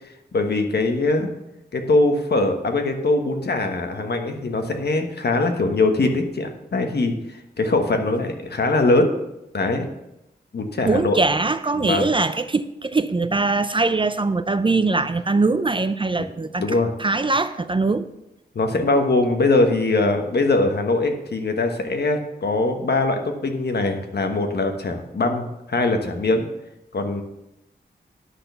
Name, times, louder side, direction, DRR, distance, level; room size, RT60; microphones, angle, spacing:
voice 1, 0.3-1.3 1.7-9.1 9.5-9.9 10.5-11.2 11.7-12.1 16.6-16.9 18.5-26.5 26.9-27.2, left 2 dB, 60° left, 1.3 m, -22 dB
voice 2, 10.8-18.1, right 3 dB, 25° right, 0.4 m, -22 dB
9.7 x 6.2 x 6.8 m
wide cardioid pair, 120°, 19 cm